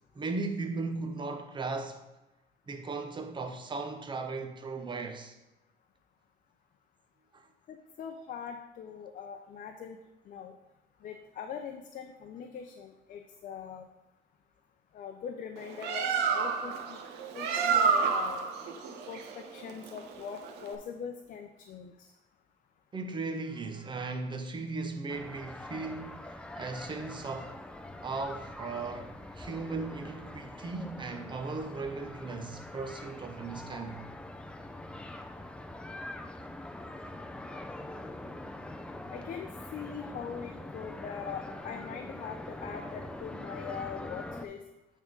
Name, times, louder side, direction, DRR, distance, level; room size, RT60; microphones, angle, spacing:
voice 1, 0.1-2.0 2.7-5.3 7.3-7.4 22.9-27.6 28.0-34.0, right 3 dB, 30° right, 0.8 m, -37 dB
voice 2, 7.7-10.0 10.3-10.6 11.0-13.9 14.9-17.0 17.3-18.5 19.1-22.1 39.1-44.6, left 7 dB, 55° left, 0.6 m, -42 dB
Bird, 15.6-20.8, right 6 dB, 80° right, 0.8 m, -30 dB
sound 1, 25.1-44.4, left 1 dB, 5° left, 0.5 m, -44 dB
8.4 x 3.7 x 5.2 m
cardioid pair, 110°, 17 cm